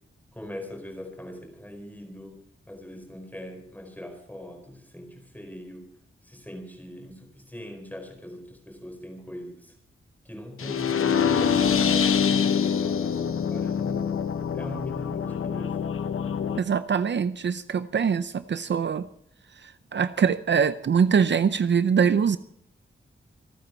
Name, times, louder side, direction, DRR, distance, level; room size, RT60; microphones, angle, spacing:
voice 1, 0.3-2.4 2.7-5.9 6.2-9.7 10.2-14.0 14.5-15.7, left 1 dB, 10° left, 4 dB, 4.5 m, -41 dB
sound 1, 10.6-16.6, left 7 dB, 85° left, 0.9 m, -25 dB
voice 2, 16.6-19.1 19.6-22.4, right 6 dB, 55° right, 12 dB, 0.6 m, -23 dB
27.0 x 9.2 x 4.5 m, 0.67 s
wide cardioid pair, 140°, 21 cm